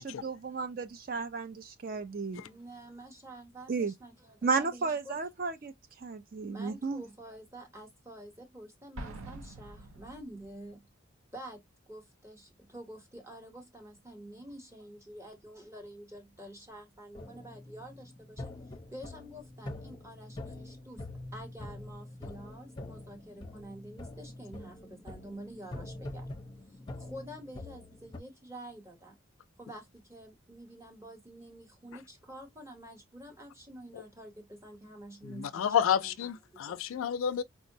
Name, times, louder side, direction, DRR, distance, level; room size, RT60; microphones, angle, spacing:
voice 1, 0.0-2.4 3.7-3.9 4.4-5.7 6.0-7.0, right 4 dB, 40° right, 0.4 m, -33 dB
voice 2, 2.4-5.2 6.5-10.9 11.3-18.5 18.9-21.0 21.3-26.3 26.7-29.2 29.6-36.8, right 1 dB, 15° right, 0.8 m, -48 dB
Explosion, 9.0-10.7, right 1 dB, 90° right, 0.7 m, -45 dB
sound 1, 17.1-28.2, left 2 dB, 20° left, 0.6 m, -45 dB
voice 3, 35.2-37.4, left 8 dB, 70° left, 0.3 m, -30 dB
4.4 x 2.1 x 2.6 m
head